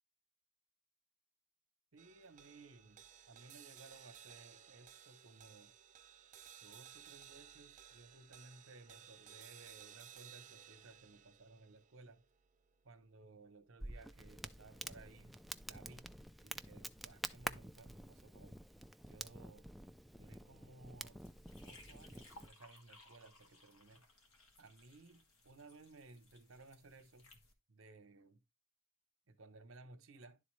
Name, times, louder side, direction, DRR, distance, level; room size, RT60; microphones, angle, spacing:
voice 1, 1.9-5.7 6.6-12.2 12.8-15.4 15.6-16.1 16.4-18.6 19.0-19.7 20.2-21.3 21.6-24.0 24.6-27.3 27.7-28.4 29.3-30.4, right 3 dB, 70° right, 0.9 m, -59 dB
sound 1, 2.0-14.5, right 9 dB, 35° right, 0.6 m, -59 dB
Crackle, 13.8-22.5, right 1 dB, ahead, 0.3 m, -49 dB
sound 2, 21.2-27.5, left 2 dB, 90° left, 1.7 m, -63 dB
11.0 x 3.9 x 3.1 m
head